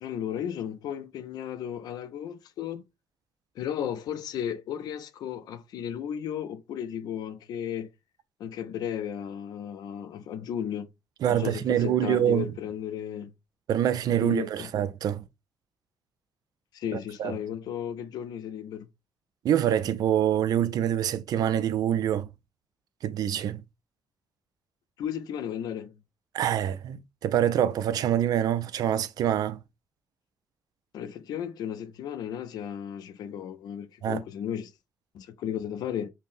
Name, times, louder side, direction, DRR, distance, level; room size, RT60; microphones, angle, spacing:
voice 1, 0.0-2.8 3.6-7.9 8.4-10.9 11.3-13.3 14.1-14.7 16.7-18.9 25.0-25.9 30.9-34.7 35.1-36.1, left 9 dB, 85° left, 0.4 m, -34 dB
voice 2, 11.2-12.5 13.7-15.2 16.9-17.3 19.4-22.3 23.0-23.6 26.3-29.6 34.0-34.2, right 10 dB, 70° right, 0.3 m, -25 dB
5.4 x 2.0 x 2.5 m
cardioid pair, 110°, 7 cm